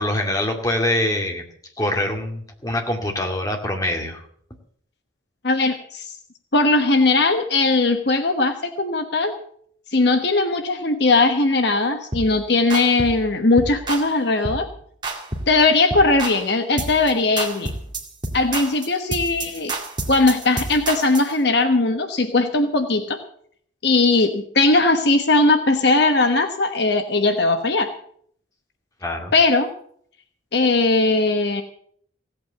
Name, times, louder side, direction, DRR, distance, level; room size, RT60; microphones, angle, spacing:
voice 1, 0.0-1.4 1.8-4.2 29.0-29.3, left 1 dB, 20° left, 2 dB, 2.3 m, -24 dB
voice 2, 5.4-6.1 6.5-9.4 9.9-14.7 15.5-17.7 18.3-19.7 20.1-23.2 23.8-27.9 29.3-29.7 30.5-31.6, left 3 dB, 55° left, 6 dB, 1.2 m, -19 dB
sound 1, 12.1-12.3 12.7-13.2 13.6-14.1 14.4-14.7 15.0-15.6 15.9-16.4 16.8-17.1 17.4-21.3, right 2 dB, 25° right, 2.2 m, -29 dB
16.5 x 8.7 x 7.9 m, 0.62 s
head